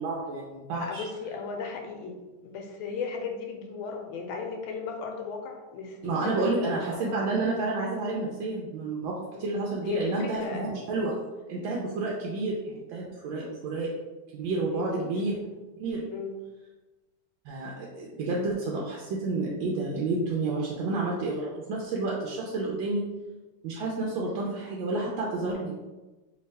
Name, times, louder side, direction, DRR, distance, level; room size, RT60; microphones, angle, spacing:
voice 1, 0.0-1.0 6.0-11.2 11.5-13.9 14.3-15.4 15.8-16.0 17.4-23.0 23.6-25.7, right 3 dB, 80° right, -3 dB, 1.4 m, -30 dB
voice 2, 0.8-7.2 9.3-9.6 9.8-10.9 14.7-15.5 16.1-16.5, left 5 dB, 85° left, 2 dB, 1.4 m, -36 dB
3.5 x 2.7 x 3.2 m, 1.1 s
omnidirectional pair, 2.2 m